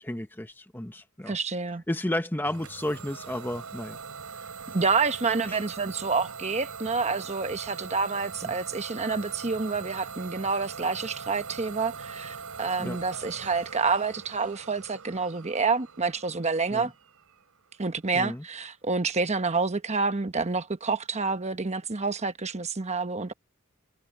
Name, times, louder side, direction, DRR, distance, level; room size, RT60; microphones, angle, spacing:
voice 1, 0.0-1.4 1.9-4.0 4.7-4.8 5.5-5.6 8.4-8.5 12.8-13.0 16.7-16.9 18.1-18.4, left 1 dB, 10° left, 1.0 m, -32 dB
voice 2, 1.3-1.8 4.7-16.9 17.8-23.3, right 4 dB, 30° right, 1.0 m, -28 dB
Idling / Domestic sounds home sounds, 2.4-18.0, right 5 dB, 85° right, 3.4 m, -42 dB
head